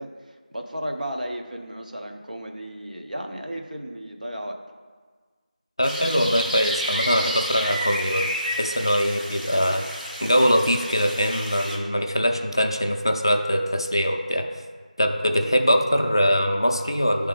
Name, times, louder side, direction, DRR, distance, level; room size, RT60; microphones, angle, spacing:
voice 1, 0.0-4.6, equal, 65° right, 3 dB, 0.7 m, -34 dB
voice 2, 5.8-8.3 8.6-14.4 15.0-17.3, equal, 35° left, 4 dB, 0.3 m, -22 dB
sound 1, 5.8-11.8, equal, 90° right, 1.7 m, -30 dB
9.0 x 3.4 x 3.3 m, 1.5 s
figure-of-eight pair, 175°, 5 cm